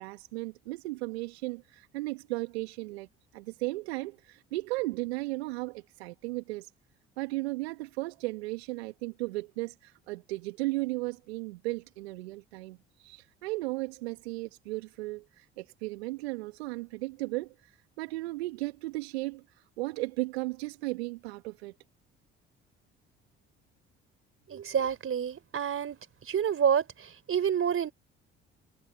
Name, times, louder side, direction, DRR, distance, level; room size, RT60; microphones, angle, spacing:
voice 1, 0.0-3.1 3.3-6.7 7.2-19.4 19.8-21.7, right 22 dB, 75° right, 1.8 m, -35 dB
voice 2, 24.5-26.0 26.3-27.9, right 8 dB, 45° right, 3.9 m, -28 dB
hypercardioid pair, 50°, 31 cm